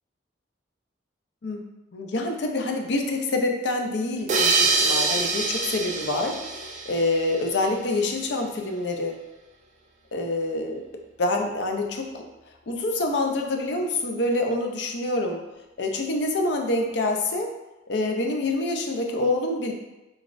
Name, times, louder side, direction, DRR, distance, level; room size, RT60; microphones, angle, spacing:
voice 1, 1.9-9.1 10.1-10.8 11.2-12.2 12.7-15.4 15.8-17.5 17.9-19.7, left 2 dB, 70° left, 3 dB, 0.5 m, -26 dB
sound 1, 4.3-7.6, right 3 dB, 40° right, 0.4 m, -25 dB
3.9 x 3.5 x 2.5 m, 1.0 s
head